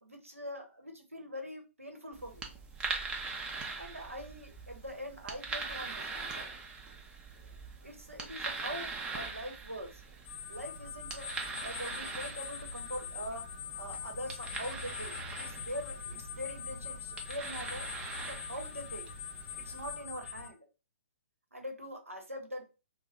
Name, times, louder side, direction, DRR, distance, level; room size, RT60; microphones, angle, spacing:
voice 1, 0.0-2.5 3.7-6.5 7.8-10.0 10.5-11.3 11.6-13.4 13.7-17.8 18.3-19.1 19.6-20.6 21.5-22.7, equal, 85° right, 3 dB, 0.9 m, -43 dB
sound 1, 2.1-19.9, right 4 dB, 10° right, 0.5 m, -42 dB
sound 2, 10.2-20.5, left 7 dB, 40° left, 0.7 m, -43 dB
3.1 x 2.1 x 3.5 m, 0.31 s
figure-of-eight pair, 125°, 7 cm